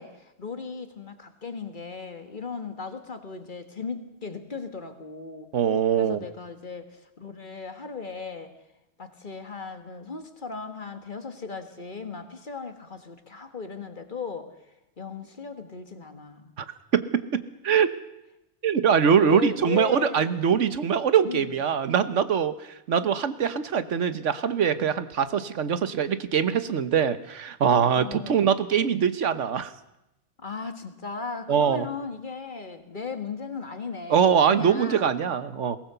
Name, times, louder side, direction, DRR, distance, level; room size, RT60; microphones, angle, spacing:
voice 1, 0.0-5.5 6.0-8.5 9.0-14.5 15.0-16.5 19.2-20.4 21.3-21.5 27.9-28.6 30.4-35.1, left 5 dB, 45° left, 8 dB, 1.7 m, -37 dB
voice 2, 5.5-6.2 16.6-16.7 16.9-17.9 18.6-29.7 31.5-31.9 34.1-35.8, right 7 dB, 80° right, 12 dB, 1.4 m, -23 dB
21.5 x 18.0 x 6.8 m, 0.89 s
omnidirectional pair, 1.2 m